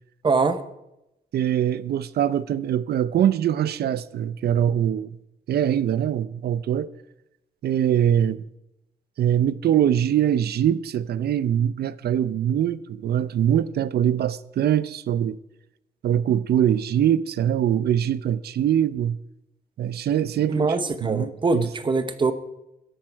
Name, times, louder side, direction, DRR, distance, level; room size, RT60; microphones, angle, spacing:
voice 1, 0.2-0.6 20.5-22.3, right 4 dB, 30° right, 0.8 m, -23 dB
voice 2, 1.3-5.1 5.5-6.9 7.6-8.4 9.2-15.4 16.0-19.2 19.8-20.7 21.0-21.7, right 10 dB, 80° right, 0.6 m, -23 dB
13.5 x 11.0 x 4.6 m
wide cardioid pair, 180°, 16 cm